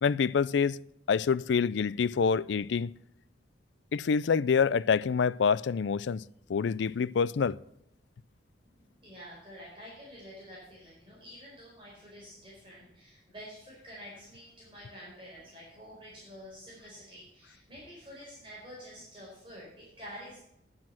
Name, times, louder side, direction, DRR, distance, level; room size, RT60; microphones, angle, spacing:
voice 1, 0.0-0.8 1.1-2.9 3.9-6.2 6.5-7.6, left 6 dB, 80° left, 0.4 m, -26 dB
voice 2, 8.6-20.4, equal, 30° right, 4.5 m, -48 dB
9.8 x 9.6 x 5.8 m
head